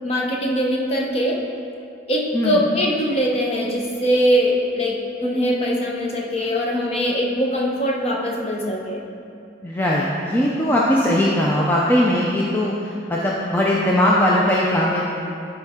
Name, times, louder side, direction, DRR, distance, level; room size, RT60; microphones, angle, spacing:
voice 1, 0.0-1.4 2.1-9.0, equal, 35° left, -2 dB, 0.9 m, -22 dB
voice 2, 2.3-2.6 9.6-15.0, left 1 dB, 10° left, -5 dB, 0.5 m, -19 dB
12.0 x 4.5 x 3.7 m, 2.6 s
head